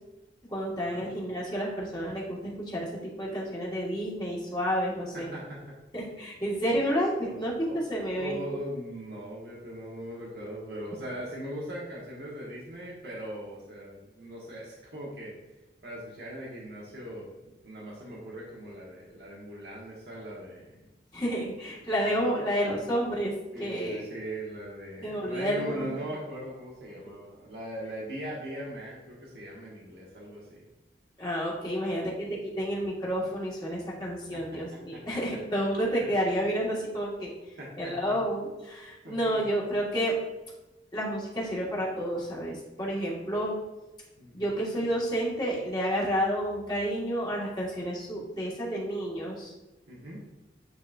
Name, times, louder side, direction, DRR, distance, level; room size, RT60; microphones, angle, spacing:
voice 1, 0.5-5.3 5.9-7.5 7.9-8.4 21.1-23.3 23.6-24.0 25.0-25.9 31.2-37.3 37.8-40.2 40.9-43.5 44.3-49.5, equal, 25° left, -6 dB, 1.7 m, -30 dB
voice 2, 5.1-5.8 7.2-7.3 7.7-7.8 8.1-15.3 15.8-20.9 21.8-22.2 23.5-30.7 31.7-32.1 34.3-34.4 34.9-35.0 36.0-36.1 37.6-38.2 39.0-39.4 44.2-44.5 49.9-50.2, right 1 dB, 65° right, -5 dB, 1.4 m, -40 dB
9.4 x 4.2 x 2.6 m, 1.0 s
head